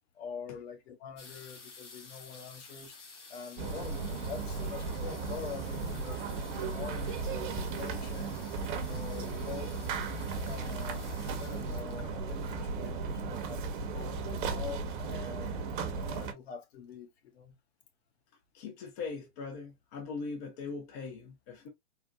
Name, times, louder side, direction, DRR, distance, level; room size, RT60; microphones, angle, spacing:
voice 1, 0.1-3.0 3.3-6.2 6.6-8.3 8.8-9.8 10.4-15.6 15.9-17.6, left 6 dB, 60° left, 1.0 m, -45 dB
sound 1, 1.2-13.7 14.5-14.6 14.8-15.2 15.5-16.1 16.6-16.7 16.9-17.0, left 4 dB, 85° left, 1.4 m, -53 dB
sound 2, 3.6-16.3, right 4 dB, 45° right, 0.8 m, -36 dB
voice 2, 18.5-21.7, left 4 dB, 15° left, 0.3 m, -40 dB
3.8 x 2.0 x 2.3 m
hypercardioid pair, 125°, 35 cm